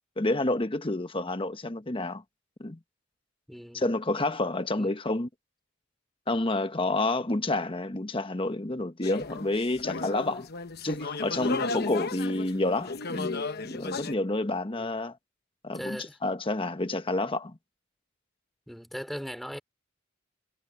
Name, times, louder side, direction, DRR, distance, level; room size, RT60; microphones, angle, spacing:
voice 1, 0.2-2.2 2.6-2.8 3.7-5.3 6.3-10.5 10.8-13.4 13.7-15.2 15.6-17.6, left 2 dB, 25° left, 1.1 m, -29 dB
voice 2, 3.5-3.8 4.8-4.9 14.8-15.0 15.7-16.2 18.7-19.6, equal, ahead, 2.9 m, -39 dB
sound 1, 9.0-14.1, left 3 dB, 50° left, 1.0 m, -34 dB
head